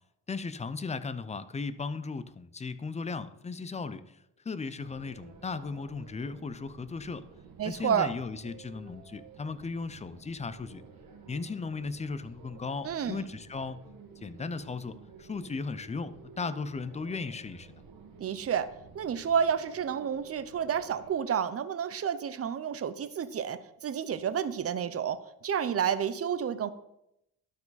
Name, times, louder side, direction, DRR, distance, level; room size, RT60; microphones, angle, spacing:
voice 1, 0.3-4.0 4.4-7.2 7.6-10.8 11.3-13.8 14.2-17.7, left 4 dB, 20° left, 14 dB, 0.4 m, -36 dB
sound 1, 4.7-21.1, right 5 dB, 65° right, 1.5 m, -52 dB
voice 2, 7.6-8.1 12.8-13.3 18.2-18.7 18.9-26.7, right 8 dB, 40° right, 13 dB, 0.6 m, -30 dB
12.0 x 4.7 x 4.1 m, 0.82 s
cardioid pair, 95°, 38 cm